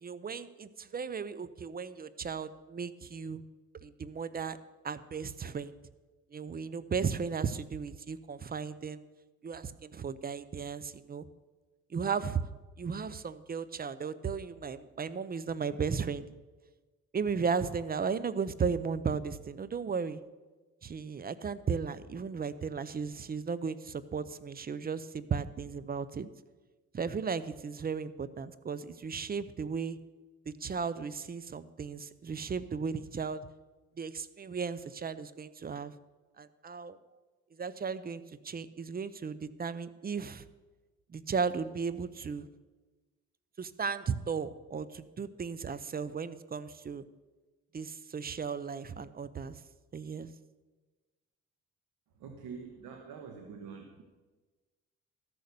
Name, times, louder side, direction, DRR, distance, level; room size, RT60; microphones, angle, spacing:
voice 1, 0.0-3.4 3.8-4.6 4.8-5.7 6.3-9.0 9.4-11.3 11.9-12.4 12.8-16.3 17.1-20.2 20.8-26.3 26.9-30.0 30.5-33.4 34.0-35.9 36.4-37.0 37.6-40.5 41.1-42.5 43.6-47.0 47.7-49.6 49.9-50.3, right 5 dB, 30° right, 15 dB, 0.6 m, -35 dB
voice 2, 52.2-54.0, right 6 dB, 85° right, 3 dB, 1.4 m, -45 dB
13.5 x 6.5 x 6.8 m, 1.3 s
cardioid pair, 90°, 30 cm